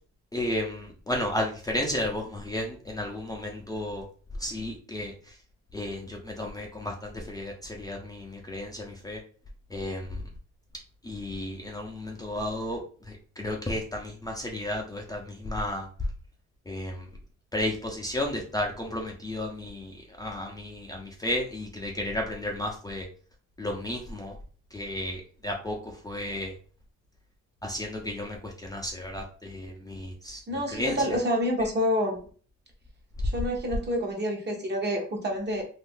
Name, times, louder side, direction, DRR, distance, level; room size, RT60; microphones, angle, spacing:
voice 1, 0.3-4.0 4.4-5.3 5.7-9.2 9.7-10.2 11.0-12.8 13.1-15.9 16.7-17.0 17.5-23.1 23.6-24.4 24.7-26.5 27.6-30.4 30.7-31.0, left 1 dB, 10° left, -1 dB, 0.6 m, -33 dB
voice 2, 30.5-32.2 33.2-35.6, equal, 35° right, 1 dB, 1.1 m, -28 dB
2.7 x 2.6 x 3.6 m, 0.41 s
cardioid pair, 90°, 30 cm